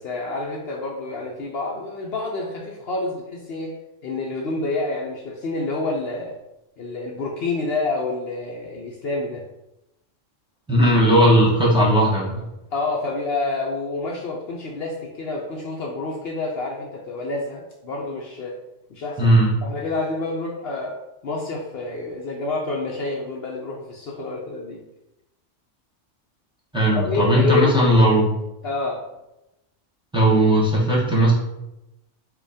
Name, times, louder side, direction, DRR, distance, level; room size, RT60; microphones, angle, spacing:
voice 1, 0.0-3.8 4.0-6.3 6.8-9.4 12.7-18.6 18.9-19.3 19.6-21.0 21.2-24.8 26.9-28.0 28.6-29.0, left 3 dB, 60° left, -1 dB, 0.8 m, -28 dB
voice 2, 10.7-12.5 19.2-19.5 26.7-28.3 30.1-31.3, right 1 dB, 5° right, -6 dB, 0.9 m, -17 dB
4.8 x 2.2 x 4.8 m, 0.93 s
omnidirectional pair, 1.3 m